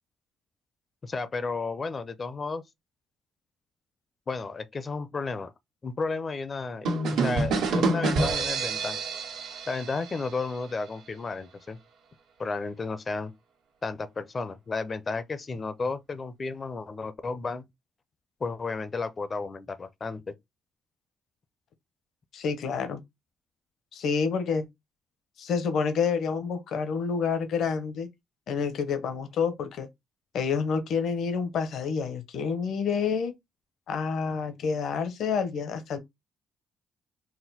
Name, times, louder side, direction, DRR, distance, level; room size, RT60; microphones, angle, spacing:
voice 1, 1.0-2.6 4.3-5.5 5.8-9.0 9.7-11.8 12.4-13.3 13.8-17.7 18.4-20.3, left 4 dB, 35° left, 0.6 m, -33 dB
sound 1, 6.9-10.6, right 3 dB, 85° right, 1.4 m, -28 dB
voice 2, 22.3-23.0 23.9-24.7 25.4-28.1 28.5-29.9 30.3-33.3 33.9-36.0, left 5 dB, 70° left, 0.9 m, -28 dB
4.2 x 2.1 x 4.1 m
cardioid pair, 90°, 0 cm